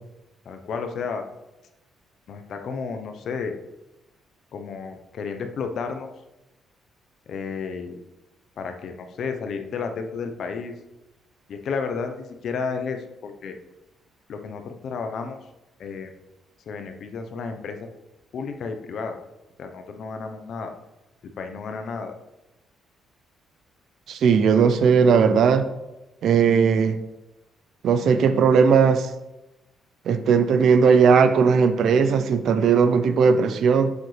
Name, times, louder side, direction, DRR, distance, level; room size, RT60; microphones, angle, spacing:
voice 1, 0.4-1.2 2.3-3.6 4.5-6.1 7.3-8.0 8.6-10.7 11.5-13.6 14.3-15.4 15.8-16.1 16.7-17.9 18.3-19.2 19.6-20.7 21.4-22.1, left 5 dB, 65° left, 6 dB, 0.9 m, -32 dB
voice 2, 24.1-25.7 26.2-27.0 27.8-29.1 30.1-33.9, right 6 dB, 70° right, 11 dB, 0.6 m, -18 dB
7.9 x 7.2 x 3.3 m, 0.98 s
cardioid pair, 90°, 0 cm